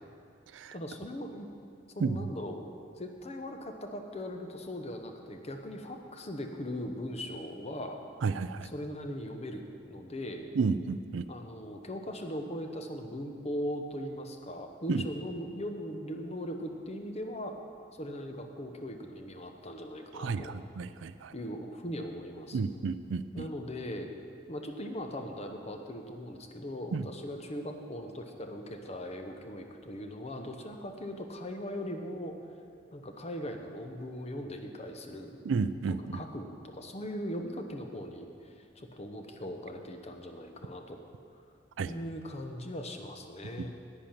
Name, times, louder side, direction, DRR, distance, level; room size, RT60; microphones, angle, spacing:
voice 1, 0.7-1.5 1.9-2.6 2.9-8.0 8.6-10.5 11.3-17.6 18.0-20.6 21.3-22.6 23.3-24.1 24.5-32.4 32.9-35.4 35.9-41.0 41.8-43.8, equal, 35° left, 5 dB, 0.9 m, -39 dB
voice 2, 8.2-8.7 10.6-11.2 14.9-15.0 20.2-20.4 20.8-21.3 22.5-23.5 26.9-27.0 35.5-36.2 41.8-41.9, right 4 dB, 80° right, 13 dB, 0.4 m, -31 dB
10.0 x 8.9 x 5.9 m, 2.4 s
head